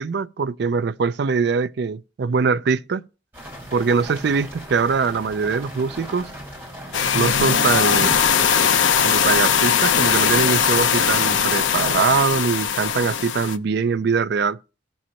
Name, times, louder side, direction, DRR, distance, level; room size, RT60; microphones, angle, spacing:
voice 1, 0.0-3.0 3.7-6.3 7.1-8.3 9.0-14.6, right 5 dB, 55° right, 0.4 m, -22 dB
sound 1, 3.3-12.2, equal, 10° right, 4.1 m, -38 dB
sound 2, 6.9-13.6, left 7 dB, 70° left, 0.6 m, -20 dB
17.5 x 6.3 x 2.9 m
head